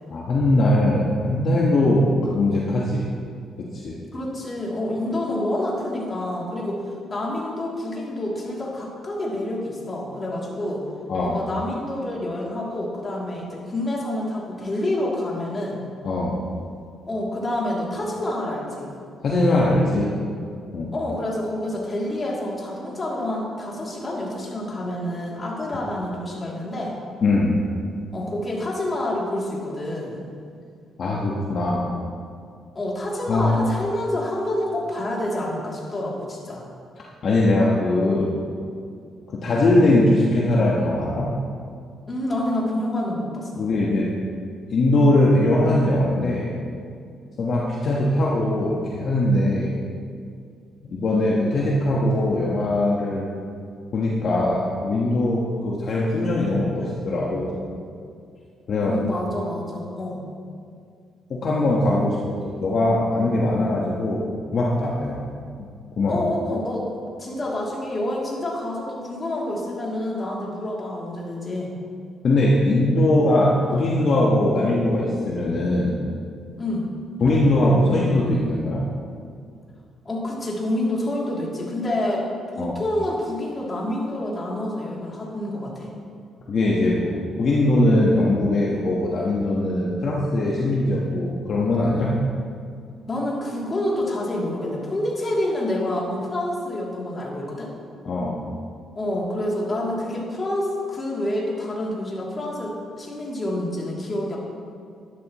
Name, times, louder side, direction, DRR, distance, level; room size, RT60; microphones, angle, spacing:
voice 1, 0.1-3.1 3.7-4.0 11.1-11.4 16.0-16.4 19.2-20.1 20.7-20.9 27.2-27.5 31.0-31.9 33.3-33.5 37.2-38.3 39.3-41.3 43.6-44.1 44.7-46.5 47.4-49.7 50.9-53.2 53.9-57.5 58.7-59.0 61.3-65.2 66.0-66.2 72.2-76.0 77.2-78.8 82.6-82.7 86.5-92.2 98.0-98.4, left 1 dB, 55° left, -4 dB, 1.4 m, -21 dB
voice 2, 4.1-6.8 7.1-10.8 11.2-15.8 17.1-18.9 20.9-27.0 28.1-30.2 32.7-36.6 42.1-43.6 58.8-60.2 66.0-66.9 67.2-71.7 76.6-76.9 80.0-82.3 82.5-85.9 93.1-97.7 98.9-104.4, left 1 dB, 30° left, -4 dB, 2.9 m, -28 dB
12.0 x 11.5 x 3.1 m, 2.3 s
cardioid pair, 90°, 0 cm